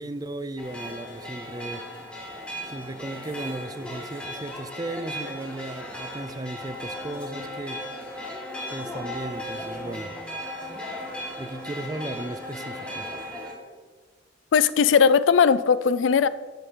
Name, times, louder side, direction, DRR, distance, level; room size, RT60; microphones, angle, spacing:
voice 1, 0.0-1.8 2.6-7.8 8.7-10.1 11.4-13.1, right 2 dB, 20° right, 11 dB, 0.4 m, -35 dB
sound 1, 0.6-13.5, left 1 dB, 5° left, 1.4 m, -36 dB
voice 2, 14.5-16.3, left 6 dB, 85° left, 17 dB, 0.4 m, -18 dB
13.5 x 5.4 x 3.9 m, 1.5 s
head